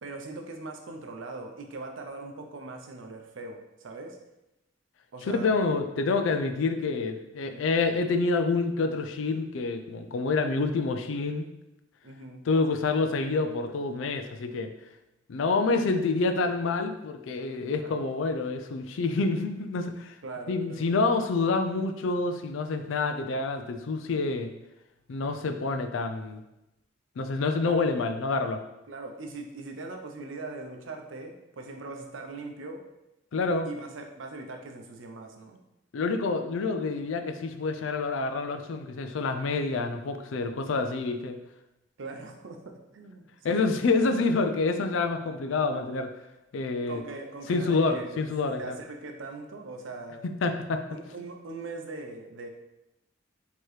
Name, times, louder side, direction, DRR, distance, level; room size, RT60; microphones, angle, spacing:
voice 1, 0.0-4.2 5.1-5.6 7.3-7.7 12.0-12.4 12.7-12.8 17.8-18.1 20.2-20.9 27.6-27.8 28.9-32.8 33.6-35.6 42.0-43.6 46.9-48.2 48.6-50.2 50.9-52.5, right 3 dB, 80° right, 3 dB, 0.6 m, -41 dB
voice 2, 5.3-11.4 12.5-14.7 15.3-20.2 20.5-24.5 25.1-26.4 27.2-28.6 33.3-33.7 35.9-41.4 43.4-46.1 46.5-47.0 47.5-48.8 50.2-50.8, left 3 dB, 80° left, 7 dB, 0.4 m, -27 dB
4.6 x 2.9 x 3.2 m, 0.92 s
head